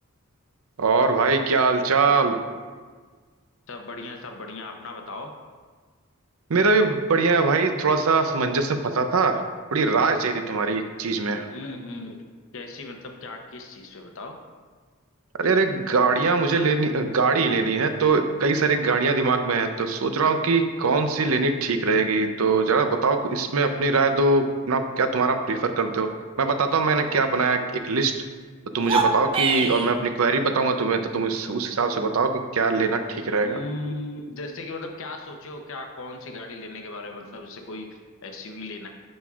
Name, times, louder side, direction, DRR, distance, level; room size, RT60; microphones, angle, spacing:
voice 1, 0.8-2.4 6.5-9.4 9.7-11.5 15.4-26.1 26.4-28.1 28.7-33.6, right 4 dB, 70° right, 7 dB, 0.6 m, -22 dB
voice 2, 3.7-5.3 11.5-12.2 12.5-14.4 33.4-38.9, left 2 dB, 65° left, 4 dB, 0.8 m, -37 dB
sound 1, 28.7-29.9, right 4 dB, 25° right, 0.5 m, -24 dB
9.4 x 6.0 x 2.4 m, 1.5 s
head